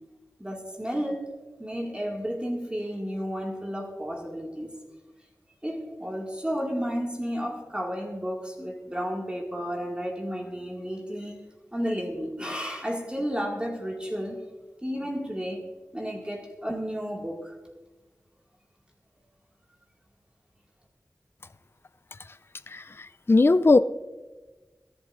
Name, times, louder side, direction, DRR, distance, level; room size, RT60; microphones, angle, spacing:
voice 1, 0.4-1.3 1.6-4.7 5.6-11.4 11.7-14.4 14.8-15.6 15.9-17.6, equal, 15° right, -1 dB, 2.1 m, -32 dB
voice 2, 22.7-23.8, left 3 dB, 35° left, 13 dB, 0.4 m, -20 dB
22.5 x 11.5 x 2.6 m, 1.3 s
wide cardioid pair, 50°, 7 cm